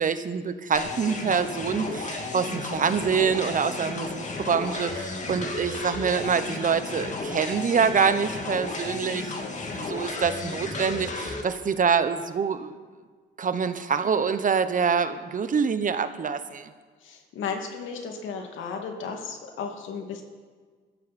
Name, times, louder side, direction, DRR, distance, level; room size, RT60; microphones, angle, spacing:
voice 1, 0.0-9.3 9.7-12.7 13.4-16.7, right 6 dB, 40° right, 11 dB, 1.1 m, -25 dB
sound 1, 0.7-11.4, left 3 dB, 35° left, 2.6 m, -33 dB
voice 2, 17.0-20.2, left 5 dB, 80° left, 3 dB, 2.4 m, -34 dB
21.5 x 14.5 x 4.4 m, 1.5 s
cardioid pair, 90°, 20 cm